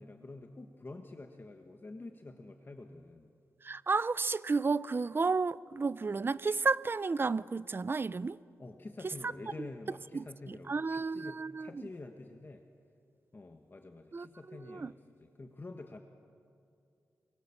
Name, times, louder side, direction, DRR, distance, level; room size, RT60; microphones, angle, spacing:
voice 1, 0.0-3.3 8.6-12.6 13.3-16.0, left 2 dB, 35° left, 1.5 m, -48 dB
voice 2, 3.6-8.4 9.6-9.7 10.1-11.7 14.1-14.9, right 4 dB, 35° right, 0.6 m, -32 dB
28.5 x 22.5 x 7.2 m
cardioid pair, 80°, 6 cm